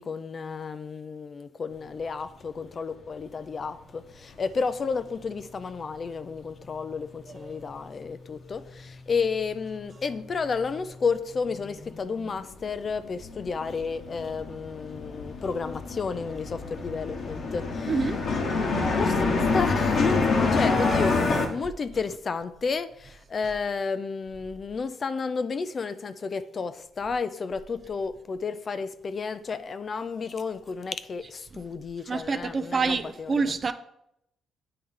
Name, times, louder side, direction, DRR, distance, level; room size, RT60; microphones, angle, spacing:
voice 1, 0.0-17.9 18.9-21.2 21.5-33.3, left 5 dB, 40° left, 0.4 m, -32 dB
voice 2, 7.3-7.7 17.9-18.2 31.5-31.6 32.1-33.7, right 4 dB, 40° right, 0.4 m, -28 dB
sound 1, 8.6-8.7 8.9-10.1 10.4-21.5, left 3 dB, 55° left, 1.0 m, -27 dB
8.6 x 3.3 x 3.6 m
cardioid pair, 90°, 0 cm